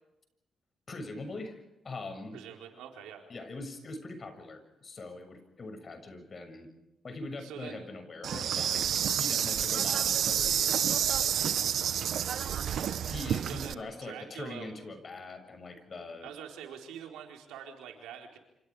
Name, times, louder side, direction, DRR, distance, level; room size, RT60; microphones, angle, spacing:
voice 1, 0.9-2.4 3.3-6.7 7.0-11.3 13.1-16.3, left 2 dB, 45° left, 7 dB, 7.1 m, -42 dB
voice 2, 2.3-3.3 7.4-7.9 13.4-14.7 16.2-18.4, right 8 dB, 85° right, 2 dB, 4.3 m, -45 dB
Insect, 8.2-13.7, right 9 dB, 70° right, 0.9 m, -29 dB
27.5 x 27.5 x 5.0 m, 0.92 s
supercardioid pair, 60°, 0 cm